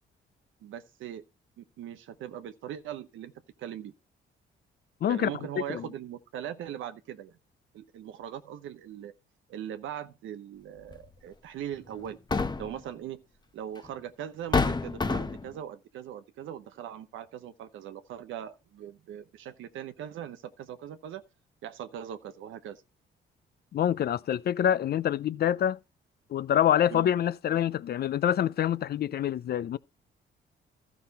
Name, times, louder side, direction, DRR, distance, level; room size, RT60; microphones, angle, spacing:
voice 1, 0.6-1.2 1.6-3.3 3.6-3.9 5.1-7.4 7.7-9.1 9.5-12.2 12.6-13.2 13.5-21.2 21.6-22.8 26.9-27.1, right 10 dB, 85° right, 1.0 m, -40 dB
sound 1, 10.9-11.1 12.0-12.8 13.9-14.0 14.5-15.5, left 4 dB, 20° left, 0.9 m, -27 dB
voice 2, 23.7-25.8 26.3-29.8, left 10 dB, 55° left, 0.5 m, -26 dB
13.0 x 6.0 x 4.1 m
cardioid pair, 90°, 20 cm